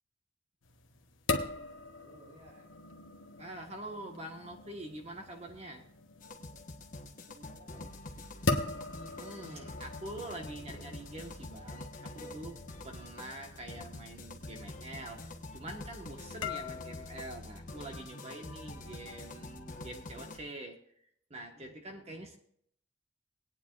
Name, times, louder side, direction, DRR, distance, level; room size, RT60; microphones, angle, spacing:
sound 1, 0.6-17.4, left 3 dB, 90° left, 1.2 m, -41 dB
voice 1, 1.9-2.7 6.2-6.7 7.1-8.0 21.5-22.2, right 1 dB, 75° right, -2 dB, 2.0 m, -58 dB
voice 2, 3.4-5.8 9.2-12.6 12.8-20.9 21.3-22.4, right 1 dB, 35° right, 3 dB, 1.5 m, -45 dB
sound 2, 6.2-20.4, left 2 dB, 45° left, 1.4 m, -46 dB
21.0 x 9.6 x 2.6 m, 0.65 s
head